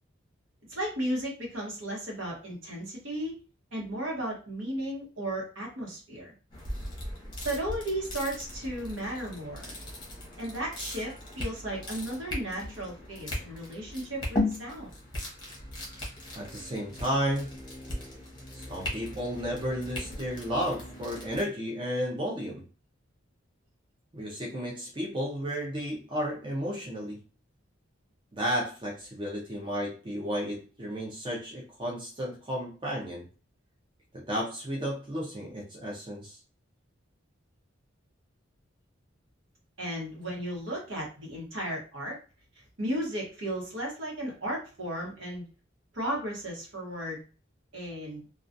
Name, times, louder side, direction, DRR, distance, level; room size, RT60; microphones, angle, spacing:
voice 1, 0.7-3.4 3.7-6.3 7.4-9.8 10.4-14.9 39.8-42.2 42.8-45.4 45.9-47.2 47.7-48.2, right 1 dB, 70° right, -2 dB, 1.0 m, -35 dB
sound 1, 6.5-21.4, left 1 dB, 20° left, 0.7 m, -38 dB
voice 2, 16.3-17.5 18.5-22.6 24.1-27.2 28.3-33.3 34.1-36.4, equal, 25° right, -3 dB, 0.5 m, -33 dB
2.3 x 2.3 x 2.5 m, 0.36 s
head